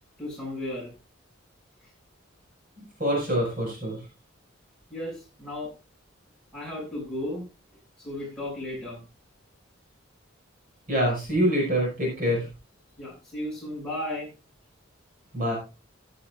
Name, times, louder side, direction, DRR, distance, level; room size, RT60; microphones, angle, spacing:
voice 1, 0.2-0.9 4.9-5.7 6.5-7.4 8.0-9.0 13.0-14.3, left 1 dB, 5° left, -4 dB, 6.4 m, -34 dB
voice 2, 2.8-4.0 10.9-12.5 15.3-15.5, equal, 45° right, -2 dB, 5.8 m, -25 dB
16.0 x 9.7 x 2.5 m, 0.31 s
head